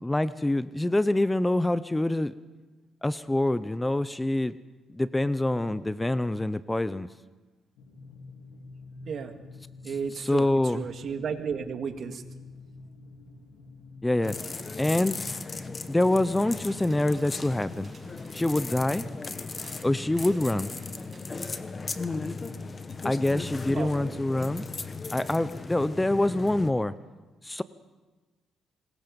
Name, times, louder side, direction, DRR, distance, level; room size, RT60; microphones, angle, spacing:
voice 1, 0.0-2.3 3.0-4.6 4.9-7.1 10.3-10.8 14.0-14.4 14.8-15.2 15.9-17.9 18.3-19.1 19.8-20.7 23.0-24.6 25.1-26.9 27.4-27.6, left 1 dB, 10° left, 15 dB, 0.6 m, -25 dB
sound 1, 7.8-16.9, left 3 dB, 90° left, 3.2 m, -48 dB
voice 2, 9.8-12.2 23.7-24.2, right 6 dB, 55° right, 6 dB, 2.0 m, -33 dB
sound 2, 14.2-26.7, left 4 dB, 30° left, 1.3 m, -37 dB
sound 3, 16.0-21.5, right 4 dB, 40° right, 7.0 m, -56 dB
25.5 x 20.5 x 5.3 m, 1.3 s
cardioid pair, 90°, 0 cm